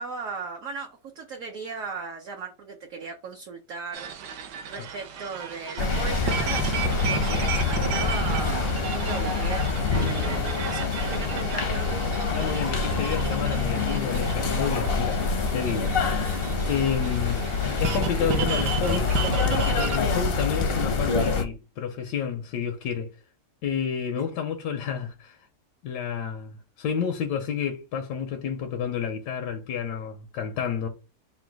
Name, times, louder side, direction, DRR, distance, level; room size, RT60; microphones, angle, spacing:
voice 1, 0.0-4.1 4.7-9.7 10.0-12.0 24.2-24.3, right 5 dB, 60° right, 1.0 m, -37 dB
sound 1, 3.9-20.0, right 6 dB, 85° right, 1.3 m, -33 dB
sound 2, 5.8-21.4, left 4 dB, 60° left, 0.6 m, -26 dB
voice 2, 12.3-15.2 15.5-15.9 16.7-17.4 17.8-19.2 19.8-23.1 23.6-25.4 25.8-30.9, left 7 dB, 90° left, 1.2 m, -30 dB
3.9 x 2.2 x 4.5 m
omnidirectional pair, 1.7 m